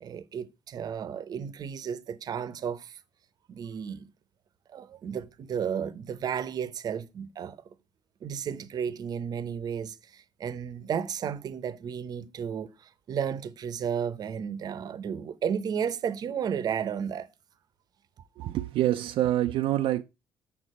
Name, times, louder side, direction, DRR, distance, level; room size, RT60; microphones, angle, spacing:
voice 1, 0.0-3.0 3.5-4.0 4.7-7.6 8.2-12.7 13.1-17.3, right 7 dB, 45° right, 0.8 m, -33 dB
voice 2, 18.4-20.0, right 13 dB, 70° right, 0.4 m, -26 dB
7.3 x 6.7 x 4.2 m
cardioid pair, 150°, 9 cm